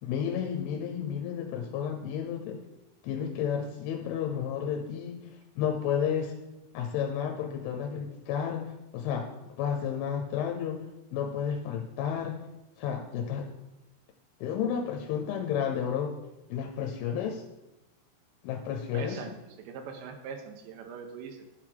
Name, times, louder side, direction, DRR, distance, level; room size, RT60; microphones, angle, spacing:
voice 1, 0.0-2.6 3.0-5.3 5.6-6.3 6.7-9.3 9.6-10.8 11.1-12.5 12.8-13.5 14.4-16.2 16.5-17.4 18.4-19.2, left 8 dB, 90° left, 2 dB, 3.3 m, -31 dB
voice 2, 18.9-21.5, right 6 dB, 80° right, 5 dB, 2.9 m, -42 dB
12.0 x 4.7 x 3.8 m, 0.93 s
omnidirectional pair, 5.4 m